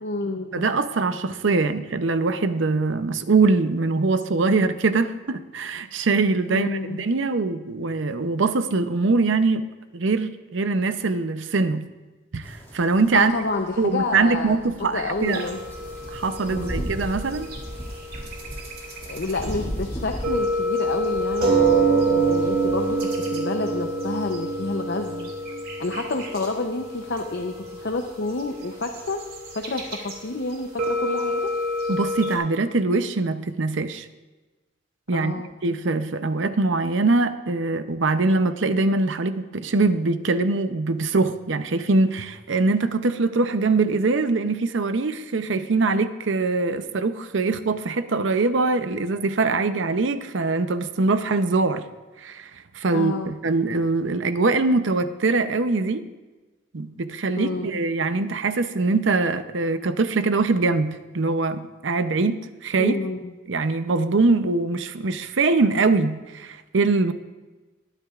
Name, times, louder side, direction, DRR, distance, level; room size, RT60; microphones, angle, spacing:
voice 1, 0.0-0.7 6.5-7.1 13.1-15.6 16.5-16.8 19.0-25.3 25.8-29.2 29.5-31.4 35.1-35.5 52.9-53.3 57.4-57.7 62.8-63.3, left 3 dB, 60° left, 4 dB, 0.7 m, -29 dB
voice 2, 0.5-9.6 9.9-11.9 12.3-13.3 13.8-15.4 16.1-17.5 31.9-34.1 35.1-35.3 35.6-51.8 52.2-56.1 56.7-62.3 62.6-62.9 63.5-67.1, right 3 dB, 75° right, 11 dB, 0.7 m, -23 dB
sound 1, 12.4-23.1, equal, 10° left, 2.3 m, -37 dB
sound 2, 15.2-19.6 19.8-19.9 20.1-30.2 30.5-32.4, right 2 dB, 50° right, 2.3 m, -27 dB
20.0 x 9.9 x 2.5 m, 1.2 s
head